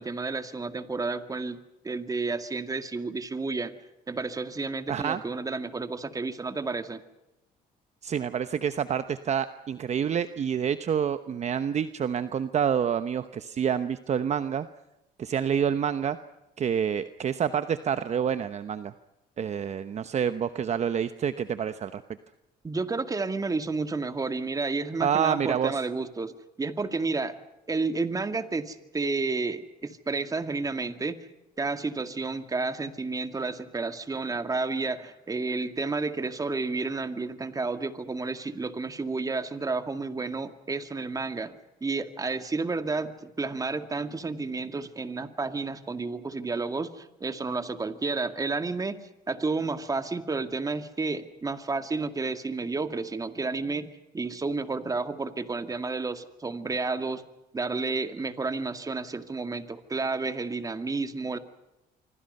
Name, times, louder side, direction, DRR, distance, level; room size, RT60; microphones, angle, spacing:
voice 1, 0.0-1.6 1.8-3.7 4.1-7.0 22.6-26.3 26.6-27.4 27.7-31.2 31.6-49.0 49.3-57.2 57.5-61.4, right 3 dB, 20° right, 9 dB, 2.0 m, -31 dB
voice 2, 4.9-5.2 8.0-14.7 15.2-16.2 16.6-18.9 19.4-22.0 25.0-25.8, right 8 dB, 40° right, 11 dB, 1.0 m, -28 dB
27.0 x 25.0 x 5.5 m, 0.90 s
cardioid pair, 110°, 17 cm